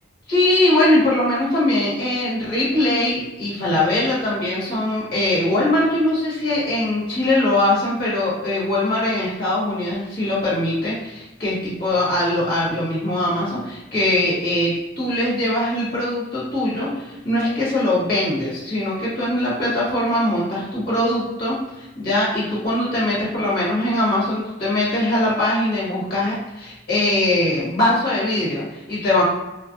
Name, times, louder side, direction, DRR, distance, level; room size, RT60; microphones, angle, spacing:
voice 1, 0.3-29.2, left 1 dB, 50° left, -8 dB, 1.1 m, -21 dB
2.4 x 2.0 x 2.6 m, 1.0 s
head